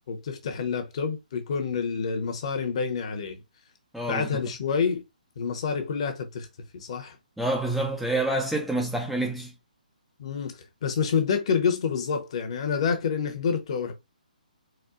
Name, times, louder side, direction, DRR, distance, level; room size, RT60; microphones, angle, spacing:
voice 1, 0.0-3.4 4.1-5.0 5.4-6.5 6.7-7.2 10.2-10.5 10.8-13.9, left 6 dB, 40° left, 0.9 m, -28 dB
voice 2, 3.9-4.3 7.4-9.5, right 2 dB, ahead, 0.4 m, -27 dB
4.2 x 2.3 x 2.4 m
figure-of-eight pair, 135°, 5 cm